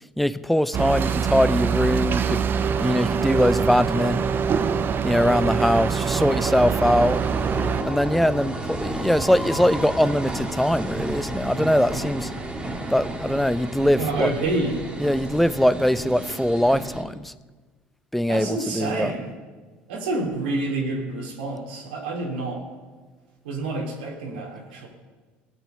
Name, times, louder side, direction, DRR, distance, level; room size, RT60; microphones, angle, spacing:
voice 1, 0.2-2.4 2.8-4.2 5.0-7.2 7.8-12.3 12.9-14.3 15.0-17.3 18.1-19.1, equal, ahead, 16 dB, 0.6 m, -22 dB
sound 1, 0.7-7.8, right 6 dB, 40° right, 0.8 m, -24 dB
sound 2, 6.1-17.0, right 2 dB, 20° right, 2.4 m, -32 dB
voice 2, 14.0-14.8 18.3-19.3 19.9-22.6 23.4-24.9, right 2 dB, 80° right, -2 dB, 2.9 m, -28 dB
17.0 x 7.1 x 6.6 m, 1.4 s
hypercardioid pair, 70°, 5 cm